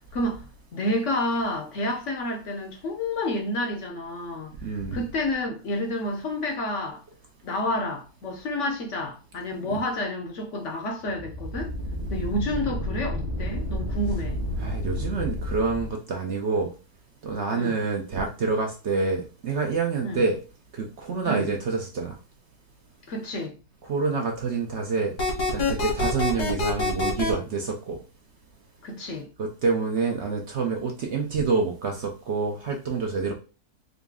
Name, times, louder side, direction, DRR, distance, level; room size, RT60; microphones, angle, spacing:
voice 1, 0.1-0.5 0.7-4.5 4.9-7.0 7.4-11.7 12.1-14.4 17.5-17.8 20.0-20.2 21.3-21.5 23.1-23.6 28.8-29.3, left 1 dB, 60° left, 0.9 m, -29 dB
voice 2, 4.6-5.0 14.6-16.7 17.2-20.4 20.7-22.2 23.8-25.2 25.5-28.0 29.4-33.3, right 4 dB, 60° right, 0.8 m, -27 dB
sound 1, 11.0-15.9, left 1 dB, 25° right, 0.6 m, -31 dB
sound 2, 25.2-27.3, left 3 dB, 85° left, 1.9 m, -25 dB
4.0 x 2.5 x 3.5 m
omnidirectional pair, 1.7 m